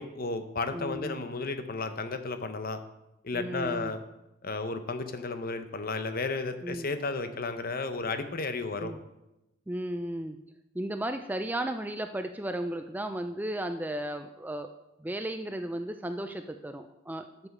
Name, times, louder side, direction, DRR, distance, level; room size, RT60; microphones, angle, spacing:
voice 1, 0.0-2.8 3.2-4.0 4.4-8.9, left 3 dB, 40° left, 9 dB, 0.7 m, -33 dB
voice 2, 0.7-1.2 3.3-3.9 6.6-6.9 8.8-9.0 9.7-10.4 10.7-14.7 15.0-17.5, right 1 dB, 10° right, 7 dB, 0.3 m, -34 dB
9.7 x 7.2 x 5.4 m, 0.94 s
head